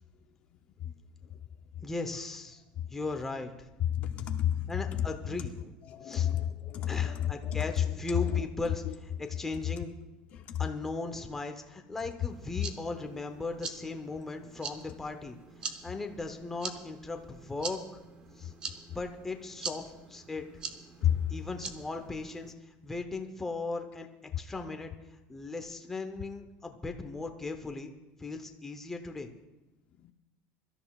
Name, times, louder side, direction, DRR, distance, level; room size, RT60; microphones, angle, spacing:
voice 1, 1.8-2.6 2.9-3.7 4.7-5.8 6.0-6.4 6.9-9.9 10.6-15.4 15.6-17.8 18.4-18.5 18.9-20.5 21.3-24.1 24.4-24.9 25.3-27.9 28.2-29.3, left 3 dB, 10° left, 0.8 m, -38 dB
voice 2, 3.9-4.7 5.9-7.7 10.5-10.6 21.0-21.2, left 10 dB, 40° left, 0.6 m, -30 dB
sound 1, 12.3-22.5, right 5 dB, 25° right, 0.8 m, -44 dB
23.5 x 13.0 x 2.4 m
cardioid pair, 170°, 4 cm